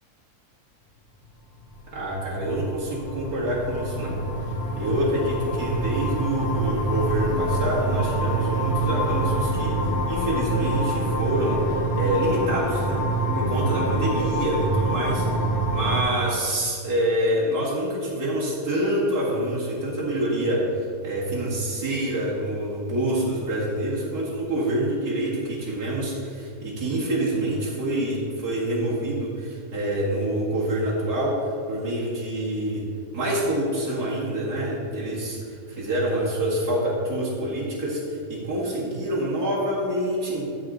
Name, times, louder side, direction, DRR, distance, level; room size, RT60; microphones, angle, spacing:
sound 1, 1.6-16.0, right 1 dB, 15° left, 2.3 m, -26 dB
voice 1, 1.9-4.2 4.8-13.0 13.3-15.3 15.7-31.3 31.7-32.9 33.1-40.4, right 1 dB, 80° right, -7 dB, 2.4 m, -26 dB
14.0 x 4.8 x 3.8 m, 2.4 s
omnidirectional pair, 1.6 m